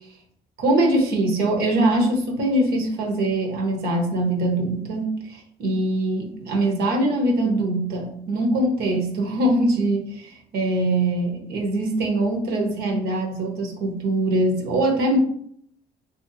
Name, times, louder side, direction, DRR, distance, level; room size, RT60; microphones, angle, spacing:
voice 1, 0.6-15.2, right 1 dB, 70° right, 0 dB, 0.9 m, -22 dB
3.5 x 2.8 x 2.5 m, 0.67 s
cardioid pair, 110°, 17 cm